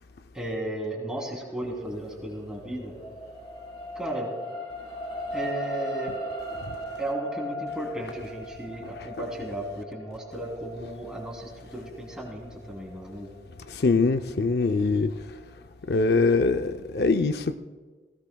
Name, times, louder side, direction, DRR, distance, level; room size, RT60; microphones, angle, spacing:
voice 1, 0.3-2.9 3.9-4.4 5.3-6.2 7.0-13.3, right 1 dB, 5° right, 3.0 m, -35 dB
sound 1, 2.2-14.7 15.2-15.4, equal, 30° left, 4.4 m, -38 dB
voice 2, 13.7-15.2 15.9-17.6, left 3 dB, 65° left, 0.5 m, -23 dB
18.0 x 17.5 x 2.3 m
head